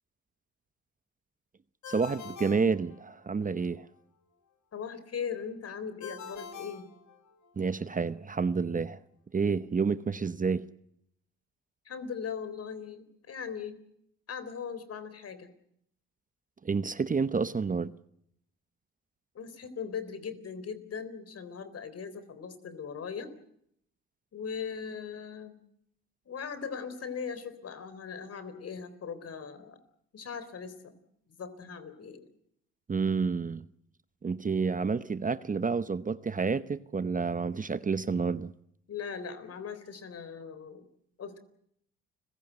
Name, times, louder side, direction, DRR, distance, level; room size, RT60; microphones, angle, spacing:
Ringtone, 1.8-3.5 6.0-7.7, left 6 dB, 70° left, 4.4 m, -45 dB
voice 1, 1.9-3.9 7.6-9.0 9.3-10.6 16.6-17.9 32.9-33.7 34.2-38.5, right 5 dB, 25° right, 0.9 m, -29 dB
voice 2, 4.7-6.9 11.9-13.8 14.3-15.5 19.3-23.3 24.3-25.6 26.3-29.8 30.1-31.0 31.4-32.3 38.9-40.9 41.2-41.4, left 6 dB, 55° left, 3.8 m, -39 dB
30.0 x 16.5 x 8.0 m
cardioid pair, 90°, 30 cm